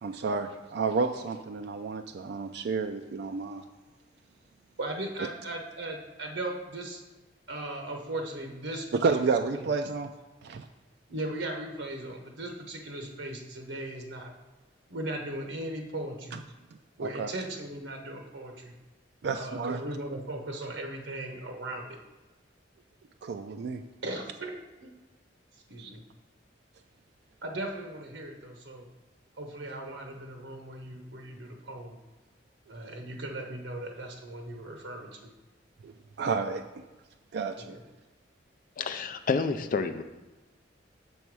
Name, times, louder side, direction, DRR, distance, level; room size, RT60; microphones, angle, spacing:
voice 1, 0.0-3.6 9.0-10.1 10.4-10.7 16.3-16.4 17.0-17.3 19.2-19.8 23.2-23.8 25.8-25.9 35.8-35.9 36.2-36.8 37.3-37.7, right 4 dB, 60° right, 6 dB, 0.3 m, -30 dB
voice 2, 4.8-7.0 7.5-9.1 9.5-9.7 11.1-14.3 14.9-16.4 17.0-18.7 19.3-22.0 24.0-24.9 25.7-26.0 27.4-28.8 29.4-32.0 32.7-35.3 37.6-37.8, right 1 dB, 85° right, 2 dB, 1.0 m, -38 dB
voice 3, 38.8-40.0, left 4 dB, 45° left, 9 dB, 0.4 m, -29 dB
6.9 x 5.5 x 4.7 m, 1.1 s
head